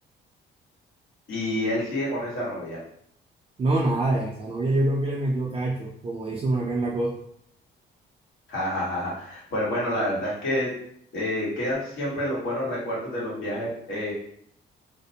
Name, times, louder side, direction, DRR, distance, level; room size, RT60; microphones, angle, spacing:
voice 1, 1.3-2.8 8.5-10.7 11.1-14.1, left 1 dB, 75° left, -6 dB, 1.3 m, -28 dB
voice 2, 3.6-7.1, right 2 dB, 30° right, -3 dB, 0.4 m, -25 dB
2.5 x 2.1 x 2.7 m, 0.68 s
cardioid pair, 90°, 20 cm